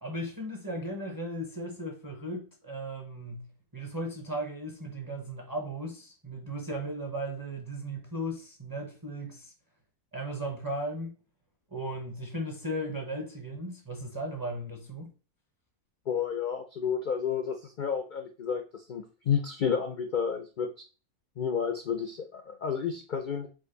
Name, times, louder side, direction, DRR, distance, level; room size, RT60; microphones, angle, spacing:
voice 1, 0.0-3.5 3.7-9.5 10.1-11.1 11.7-15.1, right 1 dB, 20° right, 0.6 m, -36 dB
voice 2, 16.1-20.7 21.4-23.5, left 7 dB, 75° left, 0.4 m, -31 dB
5.0 x 2.5 x 3.8 m
omnidirectional pair, 1.5 m